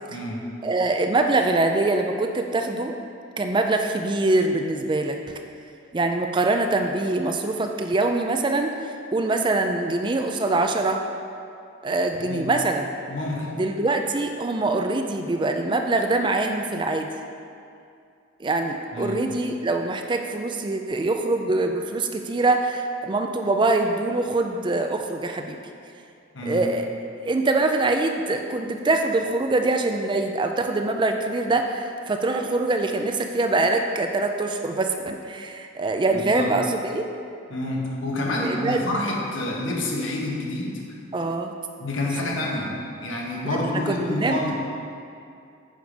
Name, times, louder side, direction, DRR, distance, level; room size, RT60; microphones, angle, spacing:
voice 1, 0.1-0.4 12.2-12.5 13.1-13.6 18.9-19.2 26.3-26.6 36.1-36.5 37.5-40.8 41.8-44.5, left 1 dB, 65° left, -2 dB, 1.4 m, -28 dB
voice 2, 0.6-3.0 3.4-5.2 5.9-11.0 11.8-12.9 13.5-17.1 18.4-25.6 26.4-26.9 27.2-37.1 38.4-38.8 41.1-41.5 43.6-44.5, right 2 dB, 25° right, 4 dB, 0.4 m, -24 dB
9.4 x 5.1 x 5.2 m, 2.5 s
head